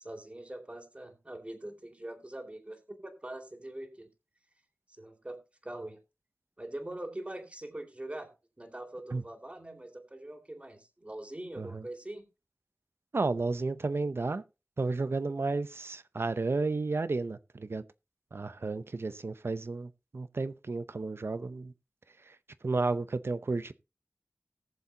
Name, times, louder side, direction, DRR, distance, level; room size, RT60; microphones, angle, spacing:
voice 1, 0.0-4.1 4.9-6.0 6.6-8.3 8.6-12.3, right 1 dB, 25° right, 2.6 m, -43 dB
voice 2, 13.1-14.4 14.8-17.8 18.3-21.7 22.3-22.4 22.6-23.7, right 3 dB, 60° right, 0.7 m, -32 dB
19.0 x 7.0 x 2.8 m
wide cardioid pair, 70°, 5 cm